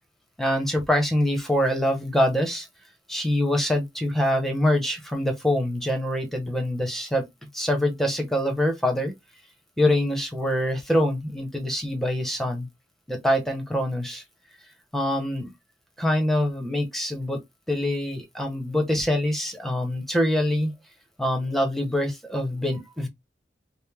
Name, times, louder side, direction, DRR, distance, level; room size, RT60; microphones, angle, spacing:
voice 1, 0.4-2.7 3.1-7.3 7.5-9.1 9.8-12.7 13.1-14.2 14.9-15.5 16.0-17.4 17.7-20.7 21.2-23.1, left 1 dB, ahead, 1.1 m, -24 dB
5.2 x 2.2 x 3.5 m
head